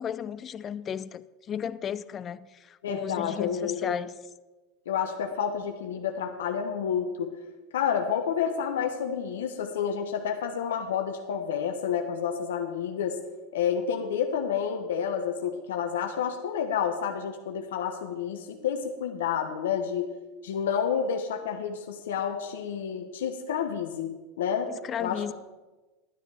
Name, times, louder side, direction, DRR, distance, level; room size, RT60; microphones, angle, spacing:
voice 1, 0.0-4.1 24.7-25.3, left 8 dB, 35° left, 0.5 m, -34 dB
voice 2, 2.8-4.0 4.9-7.3 7.7-13.2 13.5-20.1 20.4-24.1 24.4-24.7 25.0-25.2, left 7 dB, 80° left, 1.1 m, -29 dB
12.0 x 9.5 x 4.9 m
hypercardioid pair, 100°, 0 cm